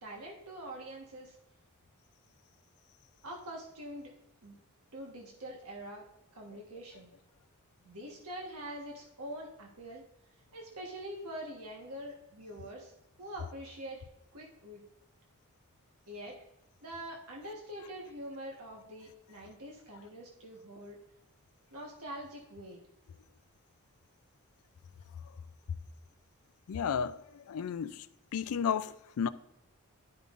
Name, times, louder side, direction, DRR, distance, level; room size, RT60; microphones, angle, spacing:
voice 1, 0.0-1.4 3.2-4.1 4.4-4.5 4.9-6.0 6.4-7.1 7.8-10.0 10.5-12.9 13.2-14.0 14.3-14.8 16.1-16.4 16.8-21.0 21.7-22.8, right 1 dB, 80° right, 1.3 m, -44 dB
voice 2, 26.7-28.1 28.3-29.3, left 7 dB, 75° left, 0.4 m, -33 dB
12.0 x 5.3 x 2.5 m
head